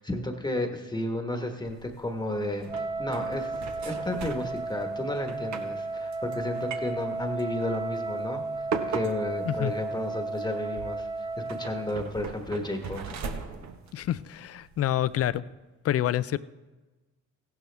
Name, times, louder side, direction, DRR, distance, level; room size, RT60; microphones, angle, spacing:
voice 1, 0.0-2.6 3.0-3.5 3.8-8.4 8.9-13.2, left 1 dB, 15° left, 4 dB, 1.3 m, -32 dB
sound 1, 1.7-15.3, right 5 dB, 65° right, 1.2 m, -41 dB
Wind instrument woodwind instrument, 2.7-12.0, right 3 dB, 15° right, 0.3 m, -34 dB
voice 2, 13.9-15.4 15.8-16.4, left 12 dB, 50° left, 17 dB, 0.5 m, -27 dB
15.5 x 12.0 x 3.4 m, 1.2 s
cardioid pair, 90°, 30 cm